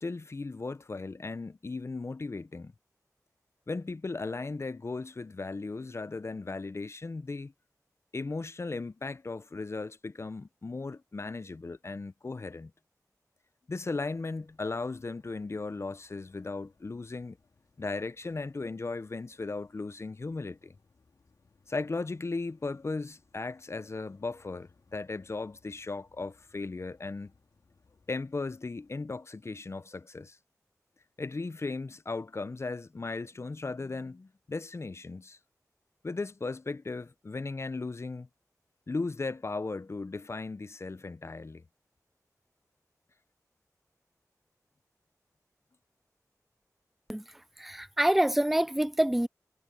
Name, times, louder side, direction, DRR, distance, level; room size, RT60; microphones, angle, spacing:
voice 1, 0.0-2.7 3.7-7.5 8.1-12.7 13.7-17.4 17.8-20.7 21.7-27.3 28.1-30.4 31.2-35.4 36.0-38.3 38.9-41.6, left 3 dB, 45° left, 0.6 m, -36 dB
sound 1, 14.1-29.0, left 4 dB, 70° left, 2.5 m, -68 dB
voice 2, 47.1-49.3, right 1 dB, 5° right, 0.3 m, -27 dB
cardioid pair, 50°, 6 cm